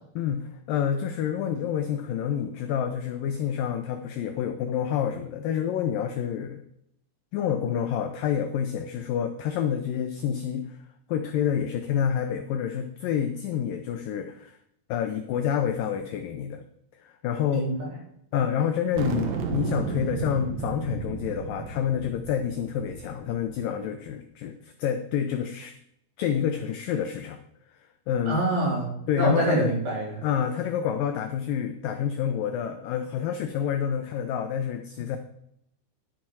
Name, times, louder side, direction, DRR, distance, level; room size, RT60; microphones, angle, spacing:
voice 1, 0.2-6.6 7.3-10.8 11.1-14.6 14.9-16.6 17.0-17.7 18.3-25.7 26.2-27.4 28.1-28.4 29.1-29.7 30.2-35.2, left 8 dB, 80° left, 7 dB, 2.0 m, -28 dB
sound 1, 18.9-23.6, right 6 dB, 70° right, 1.6 m, -33 dB
voice 2, 28.3-30.2, right 2 dB, 45° right, -4 dB, 4.8 m, -26 dB
11.0 x 8.8 x 4.7 m, 0.75 s
omnidirectional pair, 4.7 m